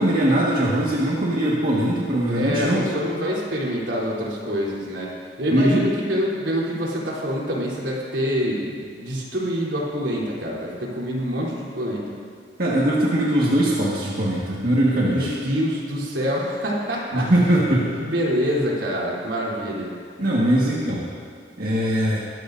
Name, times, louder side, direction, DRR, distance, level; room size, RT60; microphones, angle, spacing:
voice 1, 0.0-2.9 5.5-5.8 12.6-15.3 17.1-18.0 20.2-21.1 21.6-22.2, right 1 dB, 55° right, -6 dB, 1.7 m, -21 dB
voice 2, 2.3-12.1 15.0-17.3 18.0-19.9, equal, 85° right, -4 dB, 3.6 m, -26 dB
22.5 x 13.5 x 2.7 m, 2.2 s
head